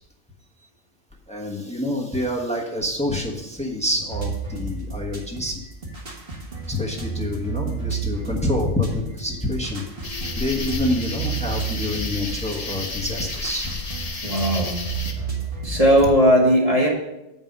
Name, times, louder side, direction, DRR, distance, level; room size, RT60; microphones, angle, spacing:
voice 1, 1.3-5.6 6.7-9.8 10.4-13.7, left 1 dB, 5° left, -1 dB, 1.2 m, -27 dB
sound 1, 4.1-16.1, right 5 dB, 55° right, 1.7 m, -32 dB
sound 2, 10.0-15.1, left 3 dB, 35° left, 1.1 m, -32 dB
voice 2, 10.0-10.4 14.2-14.9 15.6-16.9, equal, 30° right, -3 dB, 1.8 m, -18 dB
8.1 x 5.5 x 5.3 m, 0.90 s
omnidirectional pair, 1.2 m